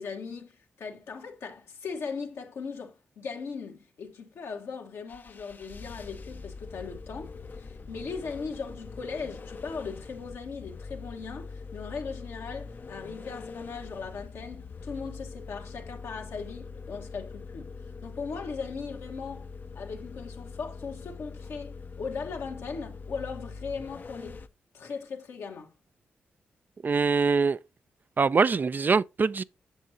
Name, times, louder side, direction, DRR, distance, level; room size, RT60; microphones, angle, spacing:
voice 1, 0.0-17.7 18.0-19.5 19.7-24.4 24.7-25.7, left 5 dB, 75° left, 1.5 m, -38 dB
sound 1, 5.1-24.5, left 4 dB, 45° left, 0.7 m, -43 dB
voice 2, 26.8-27.6 28.2-29.4, right 4 dB, 45° right, 0.4 m, -23 dB
8.2 x 6.4 x 2.8 m
supercardioid pair, 45°, 4 cm